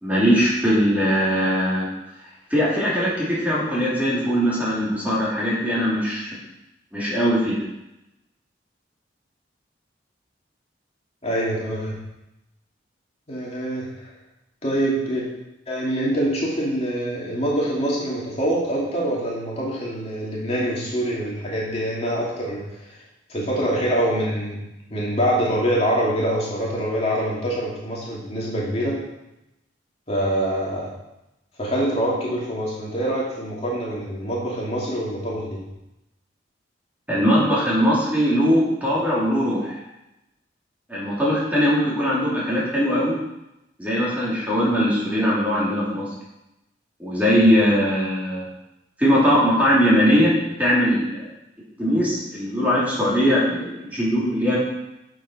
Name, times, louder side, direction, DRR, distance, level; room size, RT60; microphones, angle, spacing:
voice 1, 0.0-1.9 2.5-6.4 6.9-7.5 37.1-39.8 40.9-43.1 43.8-46.1 47.0-48.5 49.0-51.2 51.8-54.6, equal, 10° right, -7 dB, 3.1 m, -20 dB
voice 2, 11.2-12.0 13.3-14.1 14.6-15.2 15.7-23.0 23.3-24.6 24.9-29.0 30.1-30.9 31.6-35.6, right 1 dB, 35° left, -5 dB, 2.6 m, -25 dB
7.7 x 7.3 x 5.7 m, 0.91 s
head